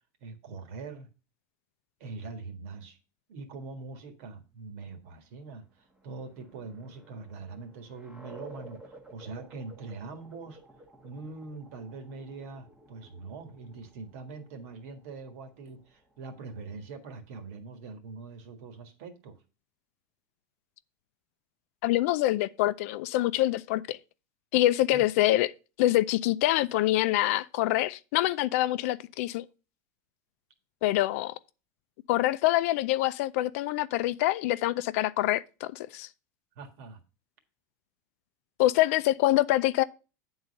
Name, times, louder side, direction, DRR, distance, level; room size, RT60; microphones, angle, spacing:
voice 1, 0.2-1.1 2.0-3.0 3.3-5.6 6.0-10.6 11.0-19.4 24.9-25.0 36.5-37.0, right 4 dB, 60° right, 1.6 m, -43 dB
sound 1, 5.6-17.0, right 1 dB, 10° right, 0.9 m, -53 dB
voice 2, 21.8-24.0 24.5-25.5 25.8-29.4 30.8-31.3 32.1-36.1 38.6-39.8, left 16 dB, 55° left, 0.4 m, -25 dB
8.9 x 4.0 x 6.4 m
supercardioid pair, 170°, 9 cm